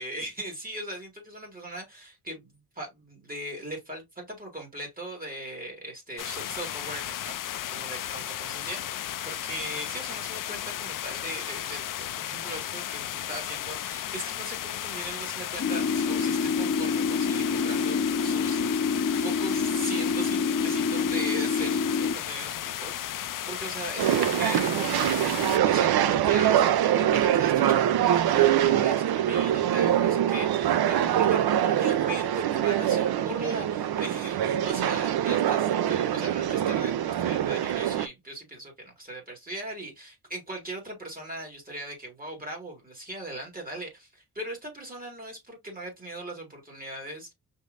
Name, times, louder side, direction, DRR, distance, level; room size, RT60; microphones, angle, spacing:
voice 1, 0.0-18.6 19.2-25.2 25.6-47.3, right 1 dB, 20° right, 2.1 m, -39 dB
sound 1, 6.2-25.6, left 12 dB, 55° left, 0.4 m, -35 dB
sound 2, 15.6-22.1, left 5 dB, 35° left, 0.9 m, -27 dB
sound 3, 24.0-38.1, right 11 dB, 70° right, 0.6 m, -24 dB
5.5 x 3.2 x 2.5 m
wide cardioid pair, 120°, 39 cm